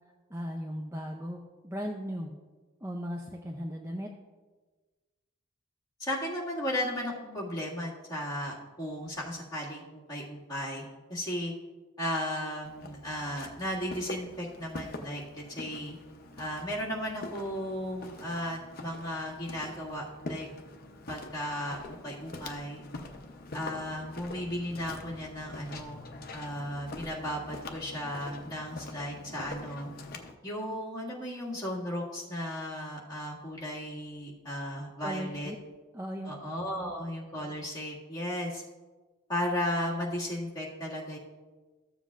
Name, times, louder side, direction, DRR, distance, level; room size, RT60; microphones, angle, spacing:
voice 1, 0.3-2.3 2.8-4.1 35.0-35.6 35.9-36.3 36.7-36.9, equal, 15° right, 0 dB, 0.5 m, -37 dB
voice 2, 6.0-11.5 12.0-16.0 16.4-20.5 21.1-22.8 23.5-26.0 26.3-29.9 30.4-35.5 36.2-38.6 39.3-41.2, equal, 20° left, -6 dB, 2.0 m, -35 dB
Walk footsteps, 12.6-30.3, left 2 dB, 45° left, 0.7 m, -45 dB
14.5 x 7.3 x 2.5 m, 1.3 s
head